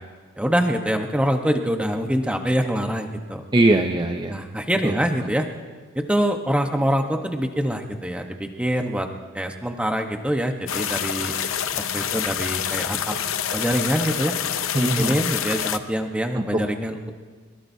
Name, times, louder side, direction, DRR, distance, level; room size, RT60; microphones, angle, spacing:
voice 1, 0.4-3.4 4.3-5.5 5.9-9.1 9.3-11.3 11.9-13.1 13.5-14.3 14.8-17.1, equal, 5° right, 4 dB, 1.1 m, -24 dB
voice 2, 3.5-4.3 4.8-5.0 14.7-15.2 16.3-16.4, right 2 dB, 20° right, 3 dB, 0.7 m, -20 dB
sound 1, 10.7-15.8, left 9 dB, 70° left, 0.7 m, -27 dB
23.0 x 22.0 x 2.8 m, 1.5 s
head